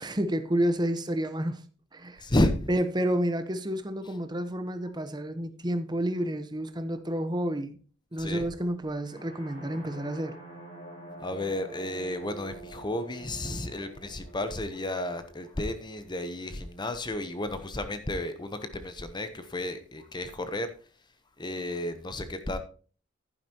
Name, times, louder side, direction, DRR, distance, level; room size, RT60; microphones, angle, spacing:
voice 1, 0.0-1.6 1.9-2.2 2.7-7.8 8.1-10.4, right 1 dB, 20° right, 1.0 m, -30 dB
voice 2, 2.2-2.7 8.2-8.4 11.2-20.7 21.4-22.6, left 1 dB, 25° left, 0.9 m, -32 dB
sound 1, 9.0-16.9, right 3 dB, 40° left, 5.7 m, -47 dB
11.0 x 9.9 x 2.9 m
head